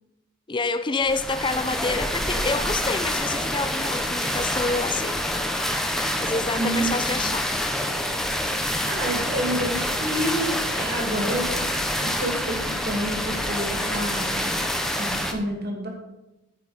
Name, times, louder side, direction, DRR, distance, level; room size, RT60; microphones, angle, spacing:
voice 1, 0.5-5.2 6.2-7.5, left 3 dB, 25° left, 0.5 m, -28 dB
sound 1, 1.0-15.3, equal, ahead, 0.8 m, -27 dB
voice 2, 6.5-6.9 7.2-7.4 8.5-8.6 8.8-11.6 12.0-14.5 14.9-15.9, right 1 dB, 50° right, 2.4 m, -29 dB
14.0 x 5.4 x 5.2 m
head